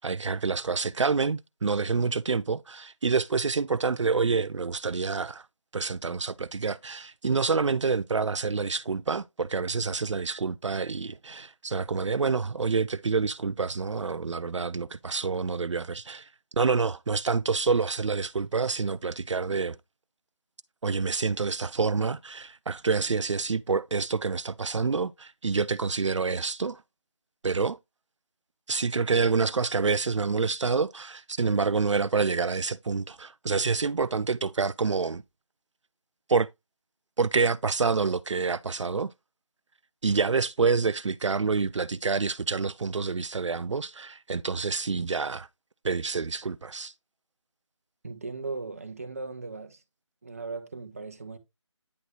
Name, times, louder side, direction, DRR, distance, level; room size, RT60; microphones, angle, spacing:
voice 1, 0.0-5.5 5.7-19.8 20.8-26.8 27.4-27.8 28.7-35.2 36.3-36.5 37.2-39.1 40.0-45.5 45.8-46.9, right 4 dB, 75° right, 0.4 m, -27 dB
voice 2, 48.0-49.8 50.2-51.4, right 3 dB, 30° right, 0.8 m, -37 dB
9.5 x 3.9 x 3.1 m
figure-of-eight pair, 165°, 16 cm